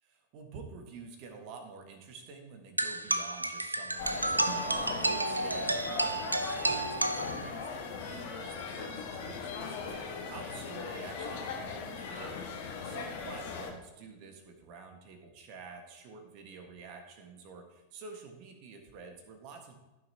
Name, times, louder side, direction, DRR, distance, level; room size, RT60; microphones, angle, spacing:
voice 1, 0.0-19.8, right 4 dB, 45° right, 5 dB, 1.6 m, -49 dB
sound 1, 2.8-7.8, right 2 dB, 85° right, 0.4 m, -31 dB
sound 2, 4.0-13.7, left 5 dB, 50° left, 1.5 m, -39 dB
15.0 x 6.3 x 2.9 m, 1.1 s
figure-of-eight pair, 90°, 0 cm